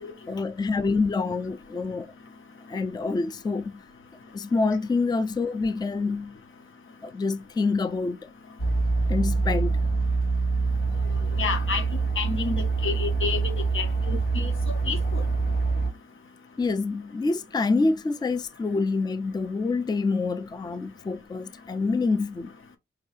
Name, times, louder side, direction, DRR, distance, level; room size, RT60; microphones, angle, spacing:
voice 1, 0.3-2.1 2.7-3.8 4.3-6.4 7.0-8.3 9.1-9.9 16.6-22.5, left 3 dB, 20° left, 0.4 m, -27 dB
sound 1, 8.6-15.9, right 4 dB, 45° left, 1.4 m, -25 dB
voice 2, 11.4-15.3, left 5 dB, 80° left, 1.0 m, -31 dB
4.6 x 2.7 x 3.1 m
wide cardioid pair, 90°, 20 cm